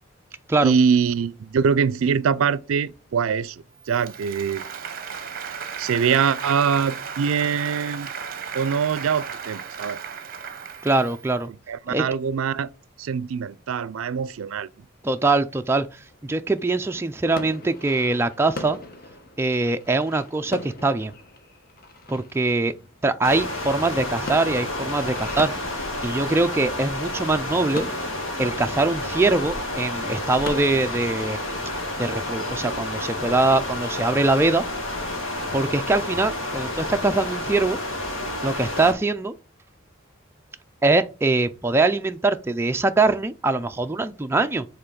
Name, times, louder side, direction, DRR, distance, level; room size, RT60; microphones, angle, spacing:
voice 1, 0.6-4.6 5.8-8.1 8.5-10.0 11.5-12.7 13.0-14.7, right 6 dB, 85° right, 0.4 m, -23 dB
Applause, 3.9-11.3, right 6 dB, 45° right, 0.7 m, -35 dB
voice 2, 10.8-11.5 11.9-12.0 15.0-18.8 19.4-21.1 22.1-22.7 23.0-25.5 26.0-27.9 28.4-31.4 32.0-34.6 35.5-37.8 38.4-39.3 40.8-44.7, right 2 dB, 10° right, 0.3 m, -22 dB
sound 1, 15.9-31.0, left 2 dB, 45° left, 1.1 m, -41 dB
sound 2, 23.2-38.9, left 1 dB, 75° left, 1.9 m, -30 dB
5.6 x 3.8 x 5.2 m
head